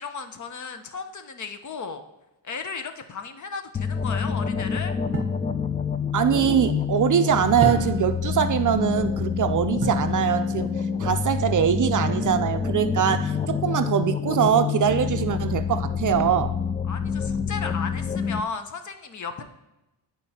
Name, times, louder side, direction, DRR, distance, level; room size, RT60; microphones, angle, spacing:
voice 1, 0.0-2.0 2.4-5.0 16.9-19.4, left 5 dB, 45° left, 8 dB, 0.8 m, -35 dB
sound 1, 3.7-18.4, left 6 dB, 20° left, 0.3 m, -27 dB
sound 2, 5.1-5.5 7.6-8.2 9.8-10.2 12.2-12.7, right 3 dB, 30° right, 1.2 m, -30 dB
voice 2, 6.1-16.5, right 9 dB, 45° right, 9 dB, 0.5 m, -23 dB
11.0 x 4.5 x 2.8 m, 0.98 s
cardioid pair, 95°, 43 cm